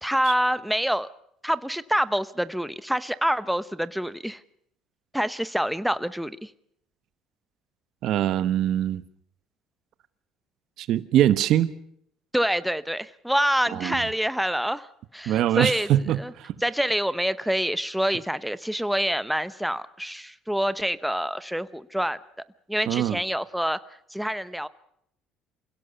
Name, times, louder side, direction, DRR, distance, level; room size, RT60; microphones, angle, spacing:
voice 1, 0.0-1.1 1.4-4.4 5.1-6.5 12.3-14.9 15.1-15.9 16.2-16.3 16.6-22.2 22.7-23.8 24.1-24.7, equal, ahead, 0.8 m, -26 dB
voice 2, 8.0-9.0 10.8-11.7 13.7-14.0 15.3-16.5 22.9-23.2, right 12 dB, 65° right, 1.1 m, -23 dB
28.0 x 16.5 x 6.9 m
cardioid pair, 110°, 0 cm